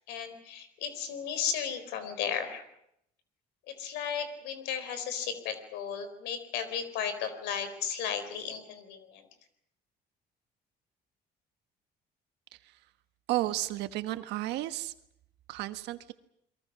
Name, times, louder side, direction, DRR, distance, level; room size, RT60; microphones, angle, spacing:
voice 1, 0.1-2.6 3.7-9.3, left 7 dB, 90° left, 10 dB, 4.1 m, -35 dB
voice 2, 13.3-14.9 15.5-16.1, right 16 dB, 90° right, 11 dB, 1.4 m, -32 dB
29.5 x 22.5 x 6.2 m, 0.76 s
cardioid pair, 110°, 17 cm